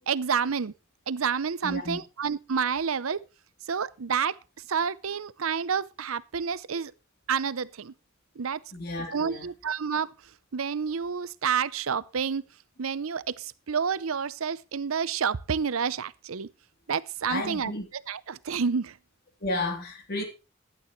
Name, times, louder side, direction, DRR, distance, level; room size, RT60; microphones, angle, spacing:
voice 1, 0.1-0.7 1.1-3.2 3.7-4.4 4.7-6.9 7.3-7.9 8.4-8.6 9.1-10.1 10.5-12.4 12.8-16.5 16.9-19.0, right 6 dB, 90° right, 0.6 m, -29 dB
voice 2, 1.6-2.0 6.7-6.8 8.7-9.5 17.3-17.9 19.4-20.2, left 2 dB, 50° left, 3.2 m, -32 dB
15.5 x 11.5 x 3.2 m
head